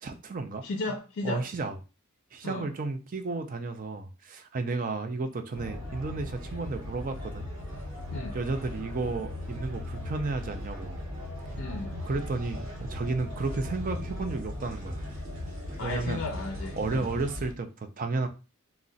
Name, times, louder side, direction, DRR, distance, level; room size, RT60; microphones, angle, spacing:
voice 1, 0.0-0.7 1.2-1.8 2.3-7.5 8.1-11.0 11.4-11.5 12.0-15.1 15.8-16.2 16.8-18.3, right 3 dB, 40° right, 7 dB, 0.4 m, -33 dB
voice 2, 0.6-1.4 2.4-2.7 8.1-8.4 11.6-11.9 15.8-17.1, left 2 dB, 55° left, 3 dB, 0.4 m, -34 dB
sound 1, 5.5-17.5, left 1 dB, 65° right, 1.2 m, -38 dB
2.5 x 2.1 x 3.8 m, 0.31 s
head